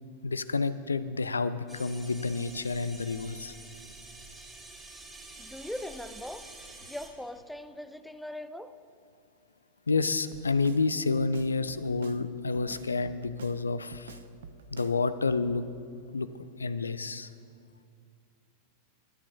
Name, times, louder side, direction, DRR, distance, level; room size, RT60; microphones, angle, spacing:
voice 1, 0.2-3.5 9.9-14.2 14.7-15.6 16.1-16.3 16.6-17.3, left 4 dB, 75° left, 14 dB, 0.4 m, -29 dB
sound 1, 1.7-7.1, right 2 dB, 10° right, 1.8 m, -48 dB
voice 2, 5.4-6.4 6.8-8.7, left 1 dB, 5° left, 11 dB, 0.5 m, -40 dB
Drum kit, 10.3-10.8 11.2-12.2 12.5-13.6 13.9-15.0 15.3-15.5, right 7 dB, 60° right, 0.5 m, -47 dB
23.5 x 10.0 x 2.6 m, 2.3 s
figure-of-eight pair, 90°, 0 cm